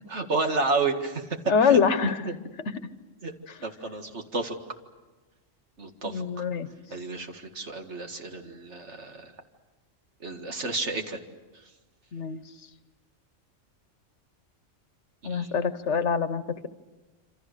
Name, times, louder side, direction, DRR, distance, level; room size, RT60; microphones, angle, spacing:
voice 1, 0.1-1.8 2.2-2.4 3.2-3.3 3.6-4.6 5.8-6.2 6.9-9.3 10.2-11.2 15.2-15.6, right 3 dB, 70° right, 5 dB, 2.2 m, -31 dB
voice 2, 1.5-2.2 2.7-2.8 6.0-6.7 12.1-12.4 15.2-16.7, left 6 dB, 70° left, 12 dB, 1.3 m, -24 dB
27.0 x 26.5 x 6.7 m, 1.2 s
omnidirectional pair, 1.2 m